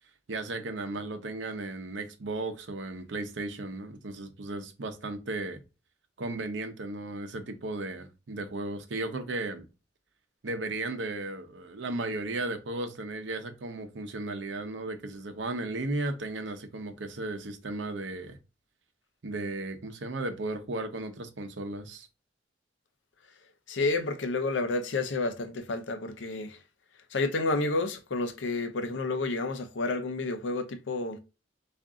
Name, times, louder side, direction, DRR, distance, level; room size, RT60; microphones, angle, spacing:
voice 1, 0.3-5.6 6.2-9.6 10.4-18.4 19.2-22.1, right 2 dB, 75° right, 0.7 m, -35 dB
voice 2, 23.7-26.6 27.1-31.2, left 3 dB, 75° left, 0.6 m, -30 dB
3.6 x 2.5 x 3.6 m
head